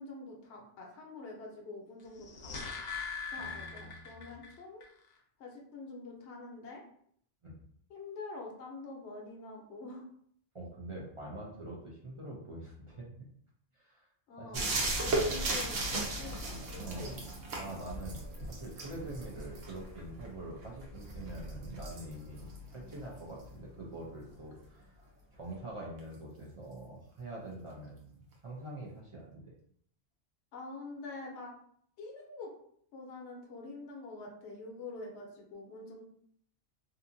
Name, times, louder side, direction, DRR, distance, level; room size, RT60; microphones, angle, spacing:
voice 1, 0.0-2.5 3.3-4.8 5.4-6.8 7.9-10.0 14.3-16.4 16.7-17.2 30.5-31.5 32.0-32.5 32.9-36.0, left 3 dB, 70° left, -1 dB, 0.9 m, -46 dB
sound 1, 2.1-4.5 4.8-4.9, left 5 dB, 50° left, 0.6 m, -40 dB
voice 2, 3.4-4.4 7.4-7.6 10.5-13.1 13.7-14.1 14.4-14.7 16.8-17.2 17.6-24.8 25.3-28.1 28.4-29.5, right 2 dB, 45° right, -4 dB, 0.4 m, -45 dB
sound 2, 14.5-23.9 26.0-26.1, right 2 dB, 70° right, 1.0 m, -37 dB
2.7 x 2.5 x 2.5 m, 0.65 s
omnidirectional pair, 1.2 m